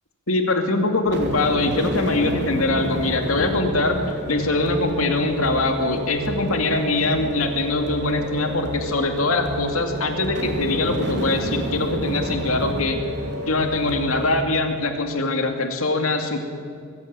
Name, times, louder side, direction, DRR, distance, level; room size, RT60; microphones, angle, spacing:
voice 1, 0.3-4.0 4.3-13.0 13.5-16.4, left 2 dB, 75° left, 5 dB, 2.5 m, -23 dB
sound 1, 1.1-14.4, right 1 dB, 55° right, 3.0 m, -29 dB
21.5 x 15.5 x 9.0 m, 2.3 s
head